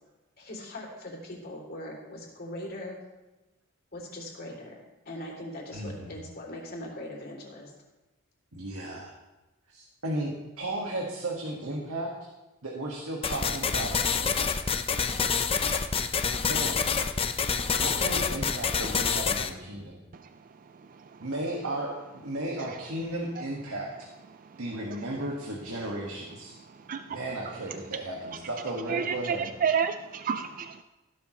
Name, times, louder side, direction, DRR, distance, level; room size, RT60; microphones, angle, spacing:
voice 1, 0.4-3.0 3.9-4.7 5.0-7.7, left 1 dB, 45° left, -1 dB, 3.3 m, -40 dB
voice 2, 5.7-6.2 8.5-9.1 9.7-12.1 12.6-14.4 16.4-16.8 17.8-20.0 21.2-24.1 24.6-26.6 27.1-29.5, right 1 dB, 75° right, -2 dB, 1.9 m, -35 dB
sound 1, 13.2-19.5, left 6 dB, 25° left, 0.6 m, -27 dB
voice 3, 28.9-30.8, right 7 dB, 40° right, 9 dB, 0.4 m, -29 dB
15.5 x 12.0 x 3.2 m, 1.1 s
head